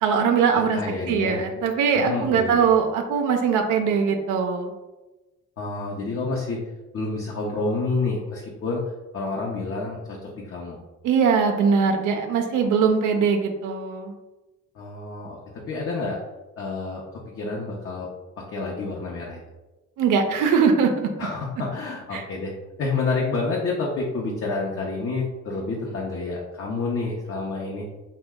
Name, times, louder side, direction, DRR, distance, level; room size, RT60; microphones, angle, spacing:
voice 1, 0.0-0.8 1.1-4.7 11.0-14.1 20.0-21.1 22.1-22.2, right 6 dB, 85° right, 4 dB, 0.5 m, -21 dB
voice 2, 0.5-1.4 1.9-2.7 5.6-6.6 6.9-8.8 9.1-10.8 14.7-16.2 16.6-18.1 18.4-19.4 21.2-22.5 22.8-27.8, left 3 dB, 50° left, -3 dB, 0.6 m, -29 dB
2.9 x 2.2 x 3.4 m, 1.1 s
cardioid pair, 90°, 30 cm